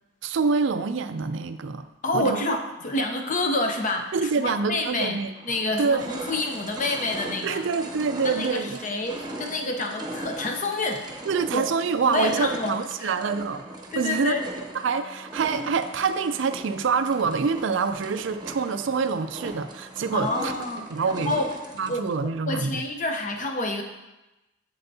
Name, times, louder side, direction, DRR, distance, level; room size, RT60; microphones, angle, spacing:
voice 1, 0.2-1.9 2.1-2.6 4.1-5.3 5.8-6.1 7.4-8.8 11.3-13.6 14.0-14.3 14.7-20.5 20.9-21.3 21.8-22.8, right 5 dB, 65° right, 10 dB, 0.4 m, -26 dB
voice 2, 2.0-7.6 8.2-11.1 11.5-11.7 12.1-13.2 13.9-14.4 20.1-20.9 21.2-21.5 21.9-23.8, left 2 dB, 40° left, 3 dB, 0.7 m, -28 dB
sound 1, 4.7-4.8 5.3-22.2, right 1 dB, 20° right, 0.9 m, -39 dB
7.7 x 7.7 x 2.7 m, 1.0 s
head